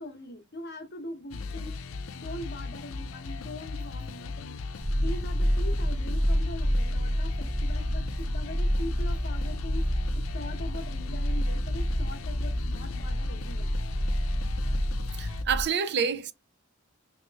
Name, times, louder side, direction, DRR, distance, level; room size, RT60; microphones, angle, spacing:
voice 1, 0.0-1.7 2.1-4.6 4.9-9.8 10.1-13.7, left 1 dB, 50° left, 0.8 m, -42 dB
sound 1, 1.3-15.4, left 4 dB, 90° left, 0.5 m, -37 dB
sound 2, 4.8-15.6, equal, 20° right, 1.3 m, -29 dB
voice 2, 15.2-16.3, right 7 dB, 55° right, 0.5 m, -28 dB
3.1 x 2.9 x 3.3 m
head